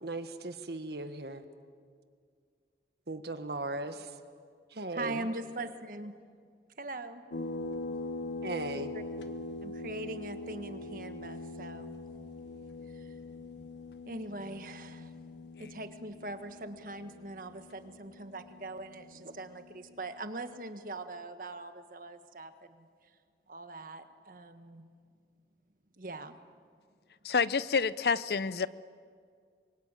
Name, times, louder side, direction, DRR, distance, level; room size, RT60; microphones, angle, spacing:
voice 1, 0.0-1.4 3.1-4.1 4.7-5.3 8.4-8.9, right 2 dB, 65° right, 8 dB, 1.6 m, -37 dB
voice 2, 4.9-6.1 6.8-7.2 8.9-9.0 9.6-12.0 12.9-13.1 14.1-15.1 15.6-22.9 23.5-24.9 26.0-26.4, right 2 dB, 50° right, 8 dB, 1.6 m, -42 dB
sound 1, 7.3-20.4, left 2 dB, 90° left, 1.3 m, -43 dB
voice 3, 27.2-28.7, left 5 dB, 65° left, 17 dB, 0.6 m, -28 dB
26.5 x 23.0 x 9.1 m, 2.1 s
head